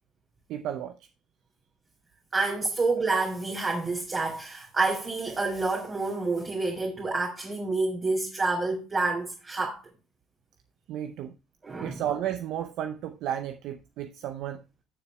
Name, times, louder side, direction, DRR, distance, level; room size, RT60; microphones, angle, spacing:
voice 1, 0.5-1.1 10.9-11.3 11.8-14.6, right 10 dB, 65° right, 0.6 m, -33 dB
voice 2, 2.3-9.8 11.6-12.0, right 3 dB, 35° right, 2.6 m, -28 dB
16.5 x 6.8 x 2.3 m
hypercardioid pair, 60°, 0 cm